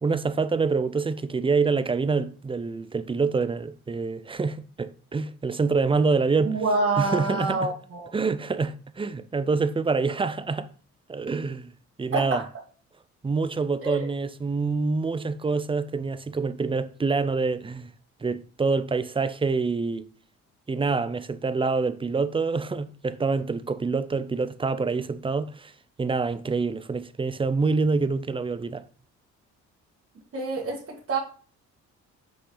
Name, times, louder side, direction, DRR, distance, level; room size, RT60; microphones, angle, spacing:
voice 1, 0.0-6.6 7.0-7.7 8.1-10.7 11.1-11.7 12.0-12.4 13.2-17.9 18.2-20.0 20.7-25.7 26.0-28.8, right 4 dB, 20° right, 0.5 m, -26 dB
voice 2, 6.4-8.1 12.1-12.4 13.8-14.1 30.3-31.2, right 3 dB, 45° right, 2.0 m, -27 dB
6.3 x 5.5 x 3.9 m
cardioid pair, 90°, 30 cm